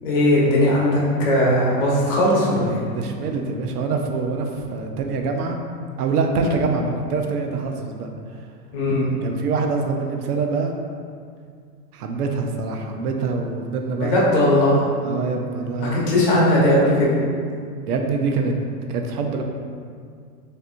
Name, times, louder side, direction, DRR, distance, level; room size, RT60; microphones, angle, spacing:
voice 1, 0.0-2.8 8.7-9.1 14.0-14.8 15.8-17.1, left 1 dB, 35° left, -4 dB, 0.9 m, -18 dB
voice 2, 2.9-5.6 6.0-8.1 9.2-10.8 11.9-14.3 15.0-16.0 17.9-18.5 18.9-19.4, right 4 dB, 75° right, 3 dB, 0.7 m, -25 dB
6.4 x 2.9 x 2.6 m, 2.2 s
supercardioid pair, 170°, 47 cm